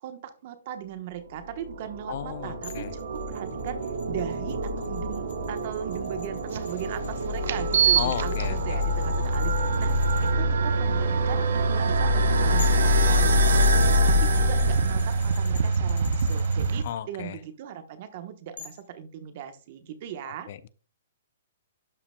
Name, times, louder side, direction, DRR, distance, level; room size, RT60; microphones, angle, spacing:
voice 1, 0.0-20.5, right 10 dB, 40° right, 9 dB, 1.0 m, -39 dB
sound 1, 1.5-15.6, left 2 dB, 90° right, 1.3 m, -26 dB
voice 2, 2.1-2.9 8.0-8.8 16.8-17.4 20.5-20.7, left 10 dB, 45° left, 15 dB, 0.5 m, -34 dB
sound 2, 2.6-10.3 12.2-12.3 12.6-16.9 18.6-18.9, left 6 dB, 70° left, 1.6 m, -47 dB
sound 3, 6.5-6.6 7.4-16.8, right 5 dB, 55° right, 0.7 m, -26 dB
12.0 x 5.7 x 2.2 m, 0.37 s
hypercardioid pair, 165°, 0 cm